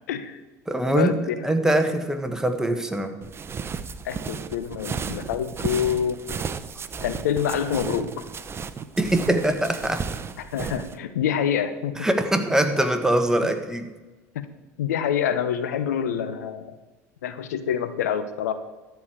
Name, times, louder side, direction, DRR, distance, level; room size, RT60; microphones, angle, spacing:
voice 1, 0.1-0.4 0.9-1.4 4.0-6.2 7.0-8.1 10.4-12.0 14.3-14.5 14.8-16.8 17.2-18.5, left 8 dB, 80° left, 11 dB, 0.9 m, -26 dB
voice 2, 0.7-1.1 1.4-3.1 9.0-10.1 12.0-13.9, right 1 dB, 5° right, 6 dB, 1.5 m, -23 dB
sound 1, 3.2-11.0, right 6 dB, 30° right, 0.8 m, -34 dB
13.0 x 4.8 x 8.6 m, 1.2 s
hypercardioid pair, 80°, 8 cm